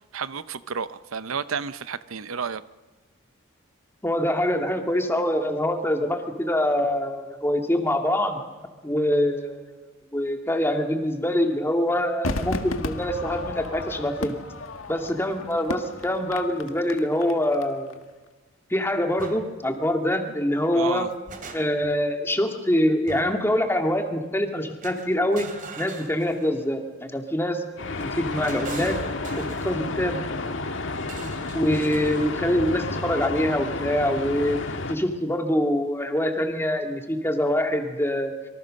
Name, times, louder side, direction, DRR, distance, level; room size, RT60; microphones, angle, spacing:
voice 1, 0.1-2.6 20.7-21.1, right 6 dB, 90° right, 14 dB, 0.8 m, -31 dB
voice 2, 4.0-8.4 8.8-9.7 10.1-14.4 14.9-17.9 18.7-21.1 21.5-25.5 25.8-27.6 28.0-29.0 29.4-30.2 31.5-34.6 34.9-38.3, left 1 dB, 10° left, 4 dB, 2.2 m, -24 dB
Crowd / Fireworks, 12.2-17.6 17.9-18.0, left 2 dB, 80° left, 1.7 m, -34 dB
sound 1, 19.2-19.4 20.8-22.0 23.1-23.5 24.8-26.7 28.0-29.8 31.0-32.3, right 4 dB, 40° right, 2.8 m, -42 dB
sound 2, 27.8-35.0, left 3 dB, 65° left, 1.7 m, -31 dB
25.5 x 24.0 x 6.5 m, 1.2 s
head